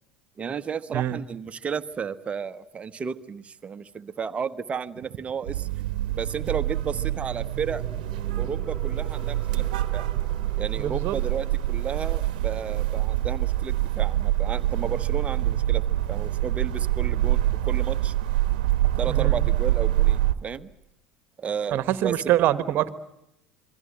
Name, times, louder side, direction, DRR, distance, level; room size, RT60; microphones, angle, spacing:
voice 1, 0.4-5.7 6.1-7.8 8.4-10.1 10.6-18.1 19.0-20.7 21.4-22.1, right 6 dB, 25° right, 12 dB, 1.1 m, -33 dB
sound 1, 5.5-20.3, right 14 dB, 65° right, 1.1 m, -25 dB
sound 2, 7.0-17.9, equal, 5° right, 7.1 m, -48 dB
voice 2, 10.8-11.2 19.1-19.4 21.7-22.9, right 13 dB, 50° right, 13 dB, 1.3 m, -24 dB
27.0 x 22.5 x 7.7 m, 0.87 s
figure-of-eight pair, 70°, 5 cm